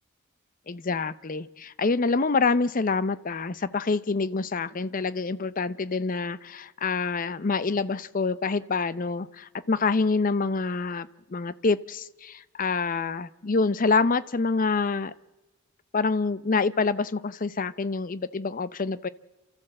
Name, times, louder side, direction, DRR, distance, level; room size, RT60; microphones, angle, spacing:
voice 1, 0.7-15.1 15.9-19.1, left 4 dB, 40° left, 16 dB, 0.6 m, -26 dB
28.5 x 13.5 x 7.6 m, 1.2 s
head